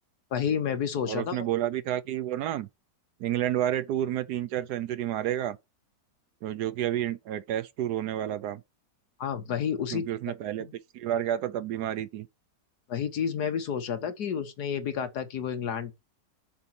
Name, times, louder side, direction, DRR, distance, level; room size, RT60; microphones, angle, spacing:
voice 1, 0.3-1.4 9.2-10.1 10.6-10.7 12.9-15.9, left 7 dB, 65° left, 1.6 m, -30 dB
voice 2, 1.1-2.7 3.2-5.6 6.4-8.6 9.9-10.7 10.9-12.3, right 11 dB, 70° right, 1.1 m, -30 dB
6.9 x 4.3 x 5.8 m
omnidirectional pair, 1.9 m